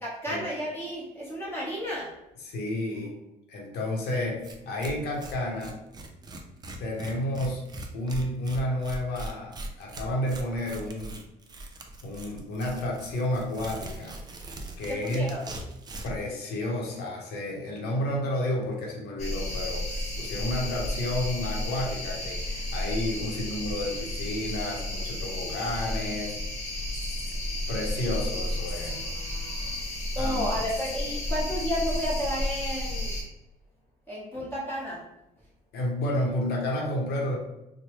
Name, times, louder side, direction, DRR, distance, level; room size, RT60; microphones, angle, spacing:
voice 1, 0.0-2.1 14.9-15.4 30.1-33.1 34.1-35.0, equal, 15° left, -7 dB, 1.0 m, -32 dB
voice 2, 2.4-3.1 3.5-5.8 6.8-7.6 7.9-11.2 12.0-14.2 14.8-15.4 16.0-26.4 27.5-29.0 30.2-30.6 35.7-37.4, left 1 dB, 75° left, -1 dB, 0.8 m, -31 dB
Tearing, 4.1-4.2 4.4-4.6 4.8-16.2, right 2 dB, 25° right, 0.4 m, -41 dB
sound 1, 19.2-33.2, left 1 dB, 40° left, 1.0 m, -32 dB
3.1 x 2.1 x 2.9 m, 0.89 s
cardioid pair, 110°, 17 cm